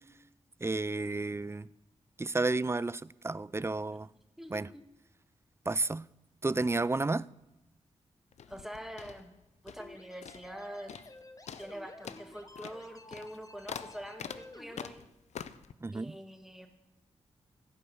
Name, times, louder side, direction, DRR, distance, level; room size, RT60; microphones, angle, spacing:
voice 1, 0.6-1.7 2.2-4.1 4.5-4.7 5.7-6.0 6.4-7.3 15.8-16.1, right 3 dB, 20° right, 0.4 m, -31 dB
sound 1, 8.3-9.9 10.2-10.6 10.9-11.2 11.5-15.7, left 8 dB, 80° left, 0.6 m, -45 dB
voice 2, 8.5-9.3 9.6-10.9 11.6-15.0 15.9-16.7, equal, 5° right, 2.2 m, -45 dB
sound 2, 9.8-14.9, left 2 dB, 30° left, 1.1 m, -52 dB
16.0 x 5.3 x 8.6 m
cardioid pair, 45°, 11 cm